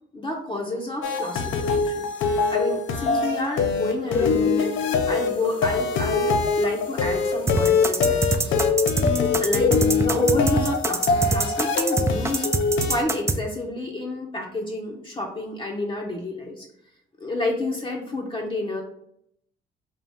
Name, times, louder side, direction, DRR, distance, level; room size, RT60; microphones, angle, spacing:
voice 1, 0.1-8.6 9.4-12.5 12.9-16.7 17.2-18.8, left 2 dB, 25° left, 0 dB, 0.6 m, -29 dB
sound 1, 1.0-13.0, left 4 dB, 75° left, 0.6 m, -23 dB
sound 2, 7.5-13.4, right 3 dB, 15° right, 0.3 m, -24 dB
3.5 x 2.4 x 4.1 m, 0.75 s
cardioid pair, 90°, 20 cm